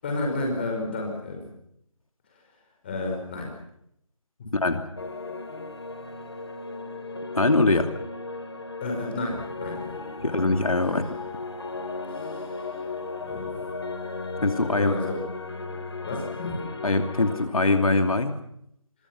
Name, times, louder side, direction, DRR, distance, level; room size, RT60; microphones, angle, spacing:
voice 1, 0.0-1.5 2.8-3.5 4.4-4.5 8.8-10.0 12.1-12.7 13.3-13.5 14.8-15.2 16.1-16.6, left 2 dB, 20° left, 1 dB, 5.2 m, -31 dB
voice 2, 4.5-4.8 7.3-7.9 10.2-11.2 14.4-14.9 16.8-18.3, left 2 dB, 80° left, 6 dB, 2.8 m, -22 dB
sound 1, 5.0-17.5, left 3 dB, 50° left, 3.7 m, -36 dB
26.0 x 23.5 x 6.0 m, 0.74 s
figure-of-eight pair, 175°, 18 cm